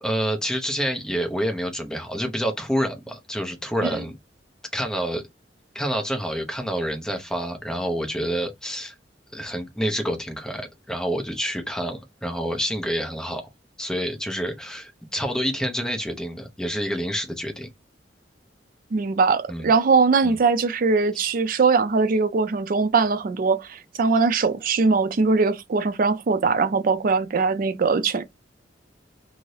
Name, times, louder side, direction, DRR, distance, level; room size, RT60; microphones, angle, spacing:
voice 1, 0.0-4.1 4.7-5.2 5.7-8.9 9.3-13.4 13.8-17.7 19.5-19.7 20.2-20.4 21.1-21.3, equal, 5° left, 0.6 m, -28 dB
voice 2, 18.9-28.2, right 4 dB, 50° right, 0.4 m, -21 dB
2.7 x 2.6 x 3.1 m
head